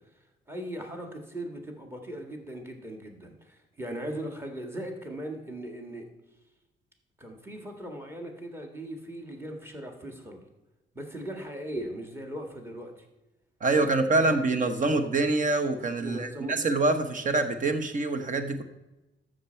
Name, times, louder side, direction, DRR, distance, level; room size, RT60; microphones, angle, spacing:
voice 1, 0.5-6.1 7.2-10.4 10.9-13.1 13.7-14.3 14.9-15.0 16.0-16.6, right 1 dB, 10° right, 3 dB, 1.7 m, -39 dB
voice 2, 13.6-18.6, right 3 dB, 40° right, 7 dB, 1.0 m, -25 dB
13.5 x 6.6 x 4.5 m, 1.0 s
cardioid pair, 135°, 20 cm